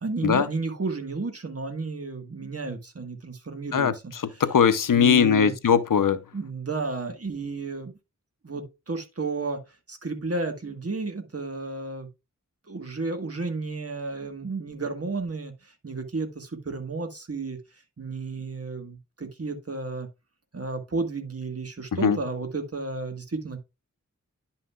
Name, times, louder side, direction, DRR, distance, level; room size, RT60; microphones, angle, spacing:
voice 1, 0.0-4.4 4.9-5.5 6.3-8.0 8.4-9.6 9.9-12.1 12.7-17.6 18.0-20.1 20.5-23.6, right 3 dB, 50° right, 1.6 m, -32 dB
voice 2, 3.7-6.2 22.0-22.2, left 7 dB, 85° left, 0.7 m, -20 dB
10.5 x 5.7 x 2.4 m
wide cardioid pair, 65°, 31 cm